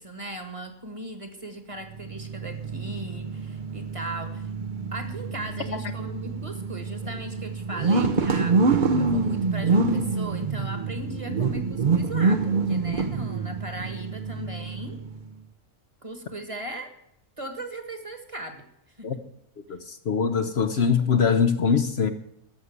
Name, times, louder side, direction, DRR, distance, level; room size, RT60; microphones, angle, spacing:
voice 1, 0.0-4.5 4.9-8.6 9.0-15.0 16.0-16.9 17.4-19.2, right 1 dB, 25° right, 7 dB, 1.6 m, -38 dB
sound 1, 1.9-15.3, right 4 dB, 45° right, 0.9 m, -26 dB
voice 2, 19.7-22.1, left 6 dB, 60° left, 8 dB, 1.0 m, -23 dB
14.0 x 6.5 x 9.5 m, 0.80 s
omnidirectional pair, 1.3 m